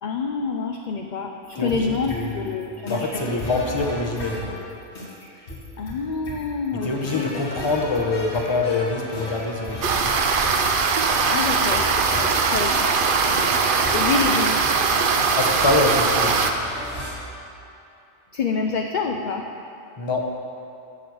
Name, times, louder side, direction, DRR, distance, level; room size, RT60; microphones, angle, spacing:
voice 1, 0.0-3.4 5.4-5.5 5.8-7.7 11.3-11.9 12.4-13.0 13.9-14.6 18.3-19.4, left 5 dB, 55° left, 3 dB, 0.6 m, -27 dB
sound 1, 1.4-17.1, left 1 dB, 85° left, 2.2 m, -36 dB
voice 2, 1.6-4.6 6.8-10.0 12.1-12.3 13.7-13.9 15.4-16.4 20.0-20.3, left 3 dB, 25° left, 1 dB, 0.9 m, -25 dB
sound 2, 9.8-16.5, right 5 dB, 55° right, 0.8 m, -21 dB
7.6 x 7.0 x 7.9 m, 2.7 s
omnidirectional pair, 1.1 m